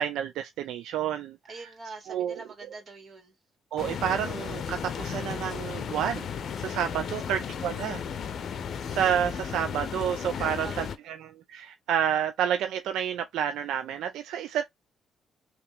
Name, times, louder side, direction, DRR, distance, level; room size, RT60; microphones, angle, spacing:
voice 1, 0.0-1.4 2.1-2.4 3.7-6.3 6.6-8.0 8.9-14.6, right 9 dB, 85° right, 0.4 m, -29 dB
voice 2, 1.5-3.4 7.0-7.5 10.4-11.0, right 3 dB, 45° right, 2.4 m, -44 dB
sound 1, 3.7-9.8, left 1 dB, 10° left, 1.1 m, -48 dB
sound 2, 3.8-11.0, left 7 dB, 60° left, 0.6 m, -35 dB
3.3 x 3.0 x 3.4 m
cardioid pair, 90°, 0 cm